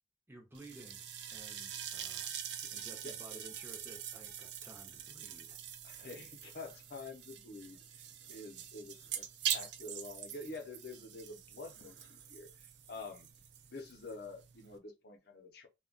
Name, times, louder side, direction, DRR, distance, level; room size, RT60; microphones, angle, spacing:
voice 1, 0.3-1.0 1.3-2.3 2.7-5.6, right 2 dB, 15° right, 0.6 m, -54 dB
sound 1, 0.5-14.8, right 9 dB, 80° right, 0.5 m, -44 dB
voice 2, 5.8-9.2 9.5-13.3 13.7-15.7, left 3 dB, 65° left, 0.6 m, -48 dB
2.3 x 2.2 x 3.6 m
head